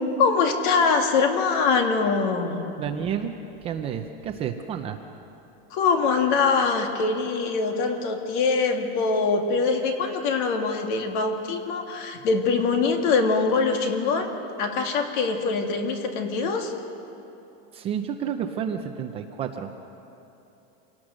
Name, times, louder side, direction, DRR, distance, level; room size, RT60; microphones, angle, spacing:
voice 1, 0.2-2.6 5.7-14.3 14.6-16.7, left 4 dB, 55° left, 4 dB, 2.2 m, -23 dB
voice 2, 2.8-3.3 3.6-5.0 17.7-19.9, right 8 dB, 20° right, 6 dB, 0.5 m, -30 dB
26.5 x 18.0 x 6.4 m, 2.9 s
supercardioid pair, 180°, 30 cm